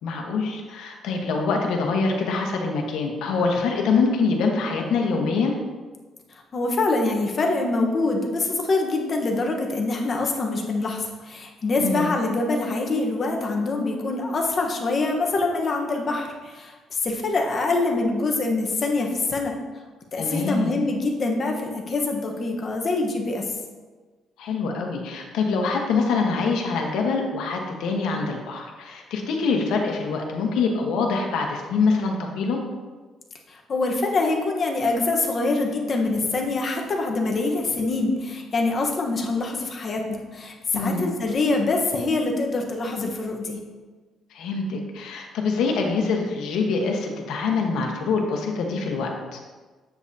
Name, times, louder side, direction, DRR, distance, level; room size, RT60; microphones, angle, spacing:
voice 1, 0.0-5.5 11.8-12.1 20.2-20.8 24.4-32.6 40.7-41.1 44.3-49.4, left 4 dB, 85° left, 1 dB, 1.2 m, -25 dB
voice 2, 6.5-19.6 20.1-23.4 33.5-43.6, left 3 dB, 40° left, 2 dB, 1.1 m, -25 dB
7.9 x 7.4 x 2.8 m, 1.4 s
cardioid pair, 120°, 0 cm